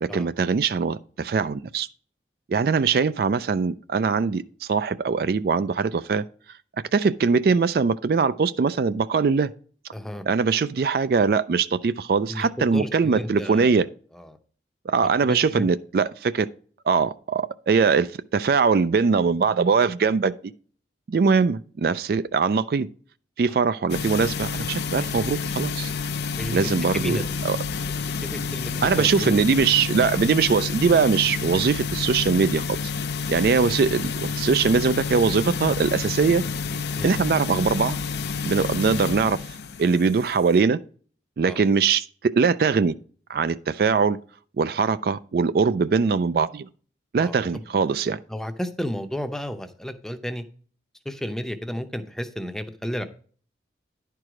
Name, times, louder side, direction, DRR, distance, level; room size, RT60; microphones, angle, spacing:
voice 1, 0.0-1.9 2.5-6.2 6.9-9.5 10.3-13.9 14.9-16.5 16.9-20.3 21.1-22.9 23.4-25.9 26.5-27.2 27.4-27.6 28.8-32.7 33.3-36.4 37.0-38.0 38.4-39.4 39.8-40.8 41.4-42.9 43.3-44.2 44.6-46.7 47.1-48.2, right 5 dB, 55° right, 0.3 m, -22 dB
voice 2, 9.9-10.2 12.3-13.8 14.1-14.4 15.2-15.7 26.3-27.5 27.8-29.4 29.9-30.0 37.0-37.2 41.4-41.6 47.2-47.4 47.8-47.9 48.3-50.4 51.0-53.1, equal, 5° left, 0.6 m, -33 dB
sound 1, 23.9-40.6, left 5 dB, 70° left, 0.5 m, -29 dB
10.5 x 4.7 x 4.9 m
head